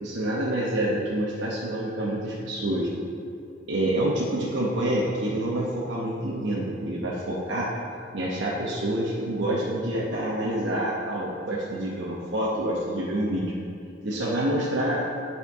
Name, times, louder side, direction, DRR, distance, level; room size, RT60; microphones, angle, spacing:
voice 1, 0.0-2.9 3.7-7.7 8.1-13.5 14.0-15.0, right 1 dB, 65° right, -6 dB, 0.9 m, -27 dB
11.0 x 4.4 x 3.6 m, 2.6 s
head